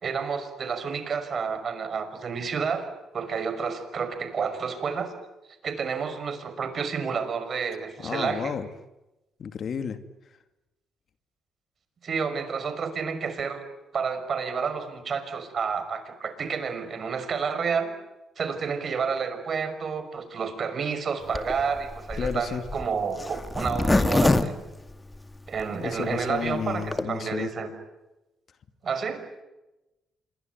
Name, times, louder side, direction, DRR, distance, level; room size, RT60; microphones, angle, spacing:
voice 1, 0.0-5.1 5.6-8.5 12.0-13.6 13.9-17.9 18.4-24.7 25.5-27.7 28.8-29.2, right 6 dB, 50° right, 10 dB, 5.9 m, -30 dB
voice 2, 8.0-8.7 9.4-10.0 22.2-22.6 25.8-27.5, left 7 dB, 55° left, 9 dB, 2.4 m, -32 dB
Zipper (clothing), 21.3-25.6 26.1-26.2 26.4-26.5 26.7-27.0, left 2 dB, 15° left, 2.1 m, -25 dB
27.0 x 23.0 x 9.4 m, 0.98 s
cardioid pair, 90°, 0 cm